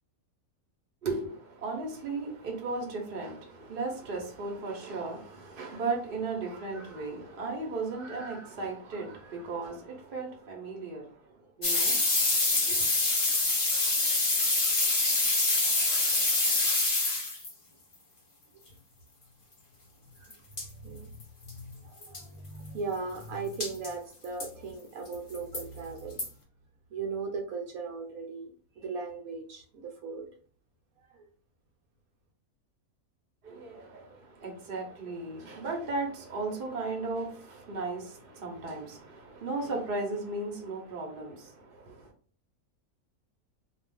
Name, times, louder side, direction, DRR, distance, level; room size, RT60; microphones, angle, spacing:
voice 1, 1.0-11.2 11.6-12.0 12.6-12.8 33.4-42.1, right 3 dB, 45° right, 0.8 m, -36 dB
sound 1, 11.6-17.5 20.3-20.4 20.6-20.7 21.2-21.3 21.5-21.6 22.0-22.2 23.6-23.9 24.4-24.5 25.1-25.6 26.2-26.3, left 2 dB, 40° left, 0.4 m, -26 dB
voice 2, 20.2-21.1 21.5-26.2 26.9-30.3, right 4 dB, 75° right, 1.1 m, -38 dB
2.4 x 2.4 x 3.4 m
omnidirectional pair, 1.6 m